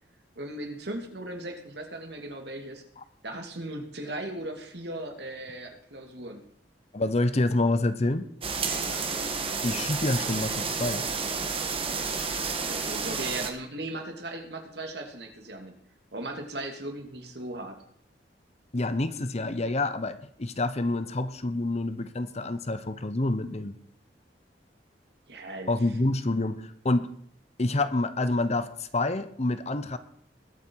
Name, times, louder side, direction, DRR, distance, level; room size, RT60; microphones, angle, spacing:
voice 1, 0.4-2.8 3.2-6.5 8.8-9.1 12.6-15.7 16.1-17.8 25.3-25.7, right 1 dB, 65° right, 2.7 m, -37 dB
voice 2, 6.9-8.3 9.6-11.0 18.7-23.8 25.7-27.1 27.6-30.0, left 2 dB, 40° left, 0.9 m, -27 dB
sound 1, 8.4-13.5, right 5 dB, 30° right, 1.8 m, -30 dB
21.0 x 9.1 x 4.8 m
head